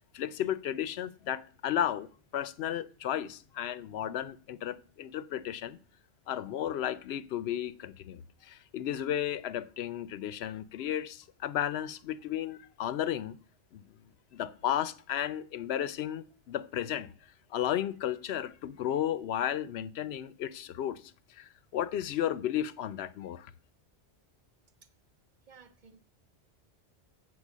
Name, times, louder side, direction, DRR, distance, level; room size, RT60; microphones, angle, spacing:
voice 1, 0.1-5.8 6.3-13.4 13.7-13.8 14.3-17.1 17.5-21.0 21.4-23.5, left 10 dB, 75° left, 0.8 m, -34 dB
voice 2, 25.5-26.0, right 6 dB, 45° right, 1.0 m, -55 dB
8.0 x 4.7 x 7.2 m
omnidirectional pair, 1.1 m